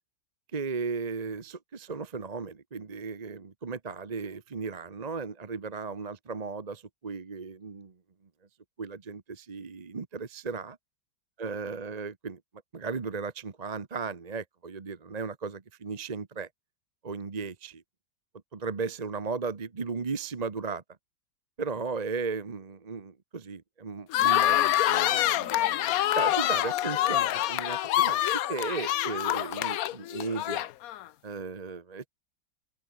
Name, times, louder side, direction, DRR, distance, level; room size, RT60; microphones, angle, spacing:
voice 1, 0.5-7.9 8.8-10.8 11.4-12.4 12.7-16.5 17.0-17.8 18.5-20.8 21.6-30.7 31.2-32.1, right 4 dB, 30° right, 0.8 m, -36 dB
sound 1, 24.1-31.0, left 13 dB, 70° left, 0.9 m, -26 dB
open air
omnidirectional pair, 2.0 m